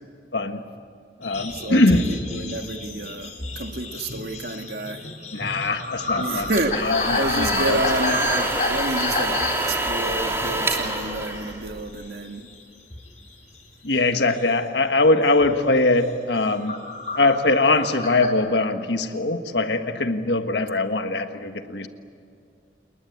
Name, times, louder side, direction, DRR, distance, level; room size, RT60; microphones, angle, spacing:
voice 1, 0.3-0.6 1.2-2.1 5.3-8.2 9.8-9.9 13.8-16.8 17.2-21.9, left 2 dB, 70° left, 7 dB, 1.6 m, -22 dB
sound 1, 1.2-11.7 11.9-12.6 12.9-14.4 14.9-15.1 15.4-15.7 16.2-18.3, left 3 dB, 40° left, 4.1 m, -31 dB
voice 2, 1.5-5.0 6.2-6.8 7.1-12.5, right 2 dB, 60° right, 5 dB, 1.9 m, -29 dB
sound 2, 6.3-12.1, right 2 dB, 15° right, 3.0 m, -27 dB
29.5 x 20.0 x 8.6 m, 2.4 s
head